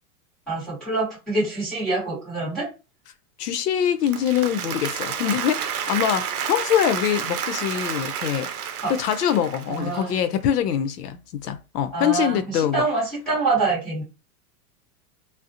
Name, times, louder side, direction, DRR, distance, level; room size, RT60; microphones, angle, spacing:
voice 1, 0.5-2.7 8.8-8.9 9.7-10.2 11.9-14.0, right 3 dB, ahead, 0.8 m, -25 dB
voice 2, 3.4-8.5 8.9-12.9, left 9 dB, 85° left, 0.6 m, -24 dB
Applause, 3.9-10.1, right 8 dB, 70° right, 0.7 m, -30 dB
2.4 x 2.0 x 2.7 m
supercardioid pair, 175°, 45 cm